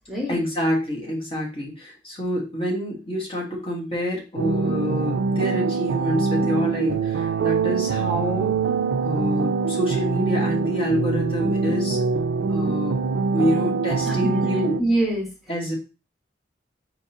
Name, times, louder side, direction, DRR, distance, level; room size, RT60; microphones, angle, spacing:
voice 1, 0.3-8.5 9.0-12.0 12.5-13.0 13.3-14.8 15.5-15.8, equal, 30° left, -2 dB, 1.3 m, -27 dB
sound 1, 4.4-14.8, right 4 dB, 65° right, 0.3 m, -24 dB
voice 2, 14.8-15.3, right 1 dB, ahead, -3 dB, 1.1 m, -24 dB
4.3 x 3.7 x 2.7 m, 0.31 s
head